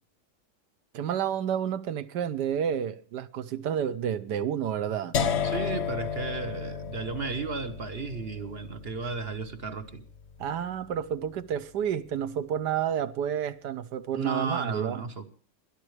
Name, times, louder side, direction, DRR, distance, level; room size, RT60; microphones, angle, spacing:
voice 1, 0.9-5.1 10.4-15.0, right 9 dB, 65° right, 1.2 m, -30 dB
sound 1, 5.1-11.1, left 7 dB, 70° left, 0.6 m, -33 dB
voice 2, 5.4-10.0 14.1-15.2, right 4 dB, 40° right, 0.9 m, -34 dB
21.0 x 12.0 x 3.2 m
omnidirectional pair, 2.4 m